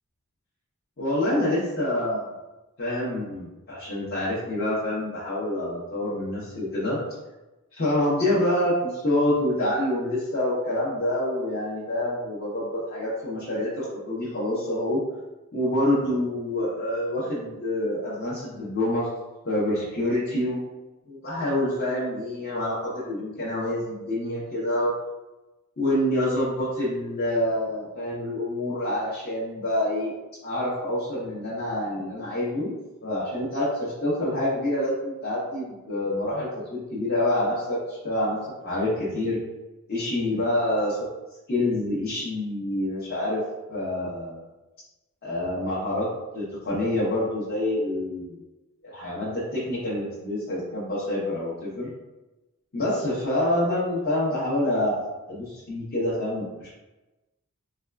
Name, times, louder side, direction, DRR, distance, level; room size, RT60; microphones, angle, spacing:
voice 1, 1.0-2.3 2.8-7.0 7.7-15.0 15.5-19.1 19.4-20.6 21.1-24.9 25.8-30.1 30.4-32.8 33.0-39.4 39.9-41.0 41.5-43.4 43.7-44.4 45.2-46.1 46.3-48.4 48.8-51.9 52.7-56.7, left 1 dB, 45° left, -9 dB, 0.8 m, -27 dB
4.2 x 2.3 x 2.2 m, 1.1 s
head